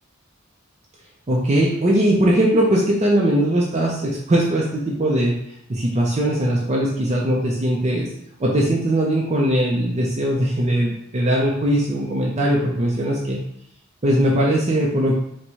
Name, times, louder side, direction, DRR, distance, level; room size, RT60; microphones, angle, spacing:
voice 1, 1.3-5.3 5.7-8.1 8.4-13.4 14.0-15.2, right 1 dB, 35° right, -4 dB, 0.6 m, -20 dB
4.5 x 2.2 x 4.0 m, 0.73 s
head